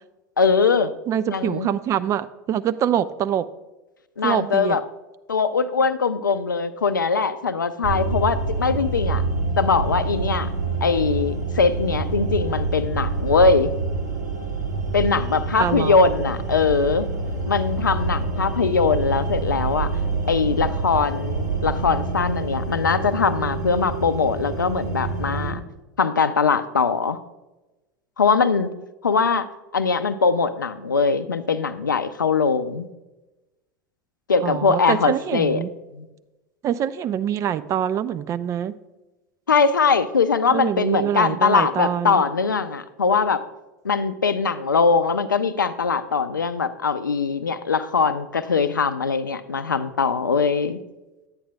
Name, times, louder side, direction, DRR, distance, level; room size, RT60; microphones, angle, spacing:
voice 1, 0.4-0.9 1.3-1.7 4.2-4.8 5.3-9.2 9.6-10.5 10.8-13.7 14.9-17.1 17.5-19.9 20.3-25.6 26.0-27.2 28.2-28.7 29.0-29.5 29.7-32.9 34.3-35.6 35.9-36.1 39.5-43.4 43.8-50.8, left 5 dB, 85° left, 13 dB, 0.4 m, -21 dB
voice 2, 1.1-3.5 4.2-4.8 15.6-16.0 34.4-35.7 36.6-38.7 40.5-42.2, right 9 dB, 30° right, 14 dB, 0.4 m, -24 dB
sound 1, 7.8-25.5, right 3 dB, 70° right, 1.5 m, -27 dB
10.5 x 8.5 x 2.3 m, 1.1 s
figure-of-eight pair, 85°, 10 cm